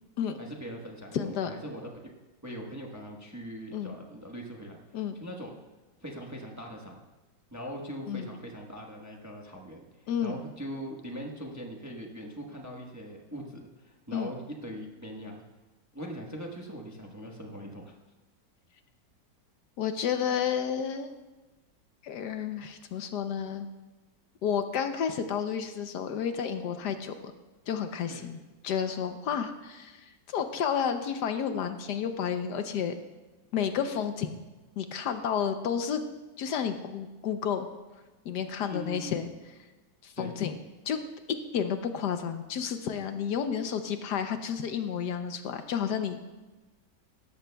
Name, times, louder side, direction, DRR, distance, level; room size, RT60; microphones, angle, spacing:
voice 1, 0.4-2.1 2.4-4.8 5.2-5.5 6.0-7.0 7.5-15.4 15.9-17.9 28.1-28.2 38.7-39.2 40.2-40.3, equal, 10° right, 0 dB, 0.9 m, -41 dB
voice 2, 1.1-1.5 3.7-3.9 4.9-5.1 8.1-8.3 10.1-10.4 14.1-14.3 19.8-21.1 22.0-23.7 24.4-27.1 27.7-28.4 28.6-32.9 33.5-34.3 34.8-36.0 36.4-37.7 38.2-39.3 40.0-40.5 40.9-41.0 41.5-46.2, left 8 dB, 70° left, 8 dB, 1.2 m, -31 dB
17.5 x 13.5 x 2.3 m, 1.1 s
omnidirectional pair, 1.9 m